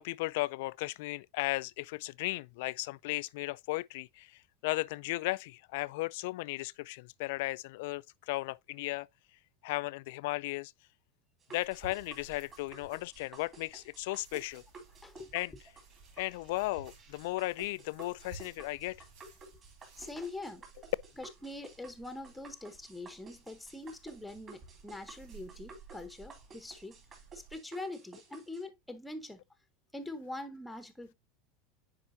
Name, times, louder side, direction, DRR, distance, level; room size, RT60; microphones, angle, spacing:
voice 1, 0.0-9.1 9.6-10.7 11.5-14.6 15.3-15.5 16.2-19.0, left 20 dB, 65° left, 0.3 m, -36 dB
sound 1, 11.4-28.6, right 3 dB, 25° right, 2.5 m, -54 dB
sound 2, 11.6-27.6, right 3 dB, 60° right, 4.0 m, -56 dB
voice 2, 20.0-20.6 21.2-27.0 27.5-29.4 29.9-31.1, left 2 dB, 5° left, 0.9 m, -43 dB
9.8 x 4.5 x 2.6 m
supercardioid pair, 155°, 0 cm